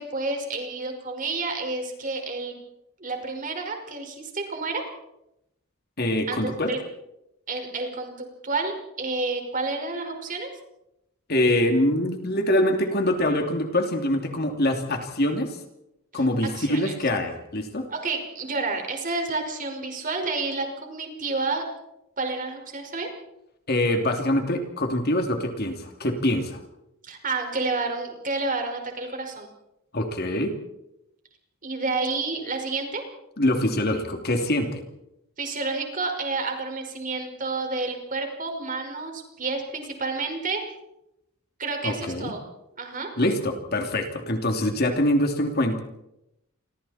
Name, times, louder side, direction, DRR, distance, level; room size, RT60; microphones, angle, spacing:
voice 1, 0.0-2.5 3.0-4.8 6.3-6.8 7.5-10.5 16.1-16.2 16.5-17.0 17.9-21.7 22.2-23.1 27.0-29.5 31.6-33.0 35.4-40.6 41.6-42.4 42.8-43.1, right 3 dB, 40° right, 4 dB, 5.3 m, -30 dB
voice 2, 6.0-6.7 11.3-15.6 16.1-17.9 23.7-26.6 29.9-30.5 33.4-34.8 41.8-42.3 43.2-45.8, left 1 dB, 50° left, 4 dB, 3.0 m, -24 dB
29.0 x 24.0 x 4.4 m, 0.85 s
head